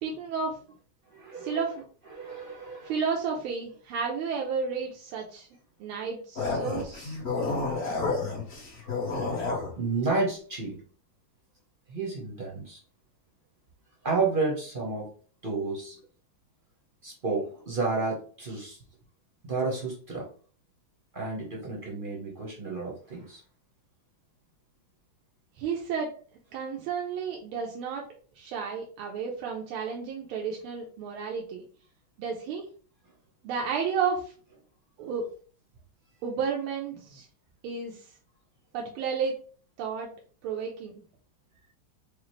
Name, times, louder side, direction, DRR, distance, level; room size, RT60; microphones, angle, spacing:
voice 1, 0.0-0.6 1.4-1.7 2.8-5.5 5.8-7.2 7.4-7.5 25.6-26.1 26.5-28.0 28.4-31.6 32.2-32.6 33.4-34.3 35.0-35.3 36.2-37.3 37.6-38.1 38.7-39.4 39.8-40.1 40.4-41.0, right 6 dB, 80° right, -1 dB, 1.5 m, -32 dB
voice 2, 1.1-1.6 2.1-3.0 9.8-10.8 11.9-12.8 14.0-15.0 15.4-16.0 17.0-18.8 19.4-20.2 21.1-23.4, right 3 dB, 35° right, -3 dB, 0.9 m, -31 dB
sound 1, 6.4-9.7, left 3 dB, 40° left, 1.2 m, -30 dB
5.1 x 2.4 x 3.1 m, 0.42 s
omnidirectional pair, 2.3 m